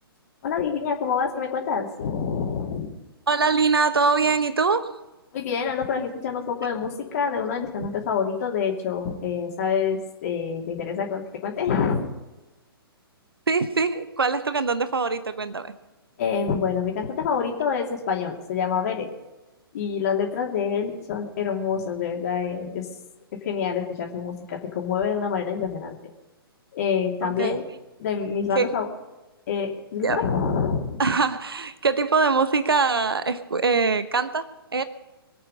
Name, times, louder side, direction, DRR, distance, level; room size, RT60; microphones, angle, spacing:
voice 1, 0.4-2.9 5.3-12.1 16.2-19.1 19.7-22.9 23.4-26.0 26.7-27.6 28.0-28.9 29.5-31.0, left 6 dB, 40° left, 1 dB, 2.7 m, -27 dB
voice 2, 3.3-4.9 13.5-15.7 27.2-27.6 28.5-28.7 30.0-30.2 31.0-34.4 34.7-34.8, right 4 dB, 70° right, 12 dB, 1.1 m, -23 dB
24.0 x 8.6 x 5.4 m, 1.1 s
figure-of-eight pair, 125°, 13 cm